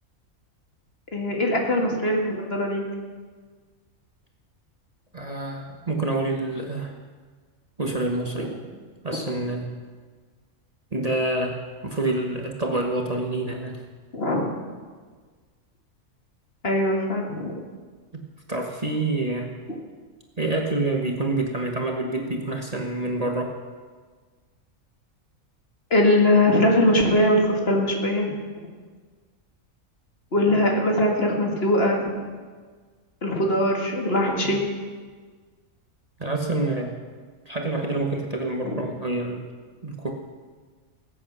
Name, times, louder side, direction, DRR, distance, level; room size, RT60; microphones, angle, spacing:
voice 1, 1.1-2.8 8.3-8.4 14.1-14.5 16.6-17.5 25.9-28.7 30.3-32.3 33.2-34.6 38.6-38.8, left 1 dB, 45° left, 1 dB, 2.2 m, -21 dB
voice 2, 5.1-6.9 7.8-8.5 9.0-9.7 10.9-13.8 18.1-18.2 18.5-19.5 20.4-23.5 34.4-34.6 36.2-36.9 37.4-39.4 39.8-40.1, right 2 dB, 30° right, 1 dB, 1.3 m, -27 dB
20.0 x 8.4 x 6.1 m, 1.5 s
omnidirectional pair, 1.4 m